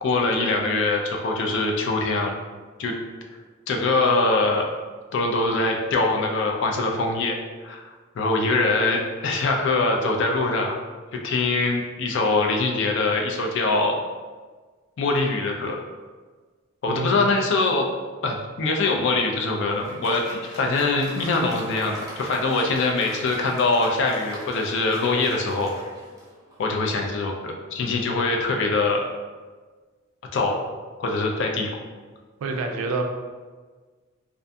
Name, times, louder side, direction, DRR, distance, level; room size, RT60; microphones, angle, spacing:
voice 1, 0.0-2.4 2.8-2.9 3.7-4.7 5.1-7.4 7.6-7.8 8.2-10.7 11.2-14.0 15.0-15.8 16.8-17.9 18.2-25.7 26.6-29.1 30.3-30.6 31.0-31.7, left 3 dB, 60° left, 2 dB, 0.3 m, -23 dB
voice 2, 16.9-17.4 32.4-33.0, right 3 dB, 75° right, 3 dB, 0.3 m, -28 dB
Applause, 19.3-26.8, equal, 15° right, 0.5 m, -41 dB
2.6 x 2.4 x 2.2 m, 1.4 s
head